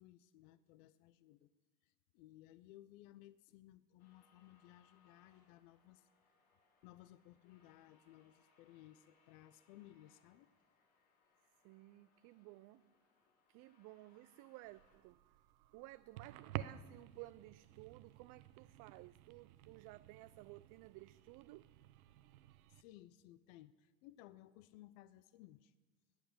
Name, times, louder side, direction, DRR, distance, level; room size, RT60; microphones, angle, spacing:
voice 1, 0.0-1.5 1.8-6.1 6.8-10.5 22.7-25.7, left 14 dB, 65° left, 0.7 m, -60 dB
sound 1, 4.0-15.0, left 4 dB, 85° left, 4.0 m, -75 dB
voice 2, 11.6-12.9 13.5-15.2 15.7-21.7, right 18 dB, 50° right, 0.5 m, -56 dB
sound 2, 14.6-22.8, right 13 dB, 80° right, 0.8 m, -52 dB
19.5 x 8.0 x 6.8 m
hypercardioid pair, 90°, 42 cm